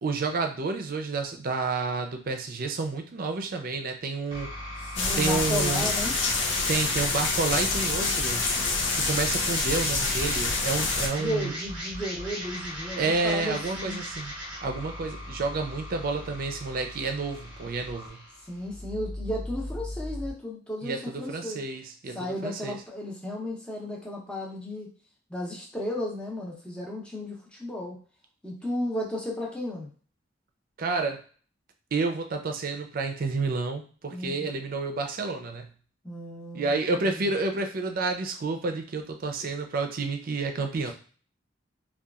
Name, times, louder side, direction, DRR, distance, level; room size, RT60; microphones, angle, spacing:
voice 1, 0.0-4.5 5.2-5.9 6.7-8.5 8.9-11.5 13.0-14.3 14.6-18.2 20.8-22.8 30.8-31.2 31.9-35.7 36.5-40.9, right 3 dB, 50° right, 5 dB, 0.4 m, -30 dB
sound 1, 4.3-20.3, equal, 25° right, 0.9 m, -38 dB
voice 2, 4.9-6.2 11.0-14.0 18.4-21.6 22.1-24.9 25.3-28.0 28.4-29.9 34.1-34.5 36.0-37.2 40.9-41.0, left 1 dB, 5° left, -3 dB, 0.7 m, -34 dB
sound 2, 5.0-11.1, left 3 dB, 75° left, 0.6 m, -27 dB
2.8 x 2.3 x 2.3 m, 0.41 s
head